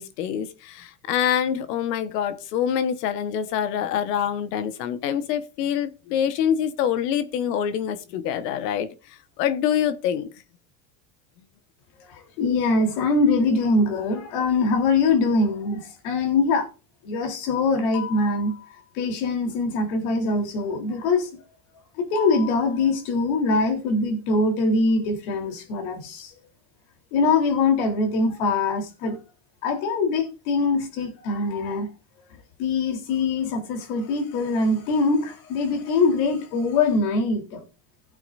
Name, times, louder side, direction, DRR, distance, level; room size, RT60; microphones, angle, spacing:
voice 1, 0.0-8.9 9.4-10.3, left 9 dB, 90° left, 1.4 m, -25 dB
voice 2, 12.4-16.7 17.0-18.7 19.0-21.3 22.0-26.3 27.1-29.2 29.6-31.9 32.6-37.6, left 3 dB, 70° left, 3.7 m, -23 dB
17.0 x 8.9 x 2.6 m
supercardioid pair, 115°, 47 cm